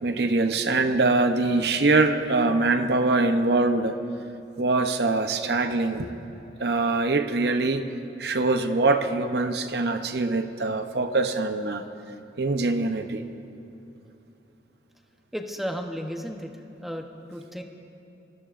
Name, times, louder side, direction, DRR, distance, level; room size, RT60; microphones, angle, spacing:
voice 1, 0.0-4.0 4.6-6.1 6.6-7.8 8.2-11.8 12.4-13.2, right 3 dB, 60° right, 7 dB, 0.8 m, -23 dB
voice 2, 15.3-16.5 16.8-17.6, equal, ahead, 3 dB, 0.9 m, -33 dB
27.0 x 21.0 x 2.6 m, 2.7 s
head